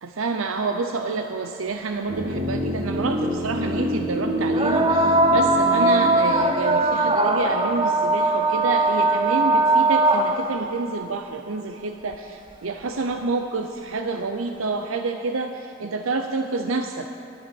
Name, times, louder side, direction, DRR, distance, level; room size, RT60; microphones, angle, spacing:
voice 1, 0.0-17.1, right 3 dB, 85° right, 5 dB, 0.7 m, -28 dB
sound 1, 2.1-8.1 8.4-8.5, equal, 40° right, 1.6 m, -28 dB
sound 2, 2.4-2.5 4.5-10.7 12.1-12.2 13.1-13.2, right 2 dB, 25° right, 0.7 m, -20 dB
11.5 x 11.5 x 7.1 m, 2.8 s
head